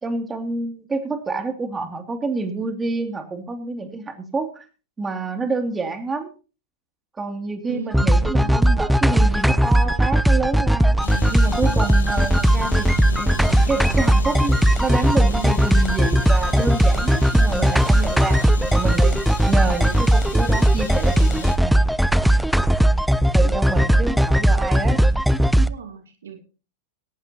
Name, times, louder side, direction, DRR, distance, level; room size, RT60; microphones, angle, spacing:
voice 1, 0.0-4.6 5.0-6.3 7.2-11.0 11.3-12.9 13.2-18.4 18.7-19.2 19.4-21.8 22.2-22.4 23.3-25.1, right 3 dB, 15° right, 5 dB, 2.7 m, -28 dB
voice 2, 7.7-8.7 25.5-26.4, right 6 dB, 85° right, 6 dB, 2.4 m, -36 dB
sound 1, 7.9-25.7, right 1 dB, ahead, 0.6 m, -18 dB
sound 2, 11.0-21.6, left 5 dB, 90° left, 1.9 m, -34 dB
17.5 x 12.0 x 2.9 m, 0.35 s
hypercardioid pair, 110°, 0 cm